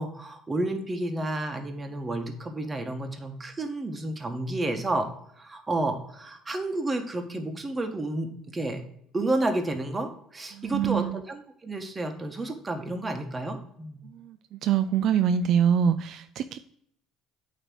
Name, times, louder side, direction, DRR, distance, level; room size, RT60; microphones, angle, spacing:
voice 1, 0.0-5.1 5.4-8.8 9.1-14.0, right 2 dB, 20° right, 6 dB, 1.4 m, -31 dB
voice 2, 10.5-11.2 14.0-16.6, right 8 dB, 60° right, 10 dB, 0.4 m, -25 dB
9.0 x 3.3 x 6.2 m, 0.70 s
supercardioid pair, 90°, 0 cm